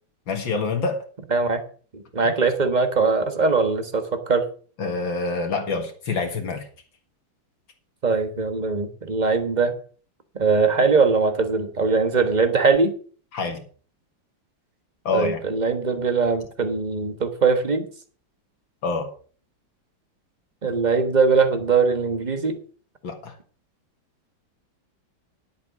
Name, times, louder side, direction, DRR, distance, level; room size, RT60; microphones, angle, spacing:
voice 1, 0.3-1.0 4.8-6.7 13.3-13.6 15.0-15.4 18.8-19.1 23.0-23.3, left 4 dB, 80° left, 3 dB, 2.6 m, -26 dB
voice 2, 1.3-1.6 1.9-4.5 8.0-9.7 10.3-12.9 15.1-17.9 20.6-22.6, right 4 dB, 25° right, 8 dB, 1.2 m, -21 dB
11.0 x 8.2 x 6.0 m, 0.42 s
omnidirectional pair, 2.1 m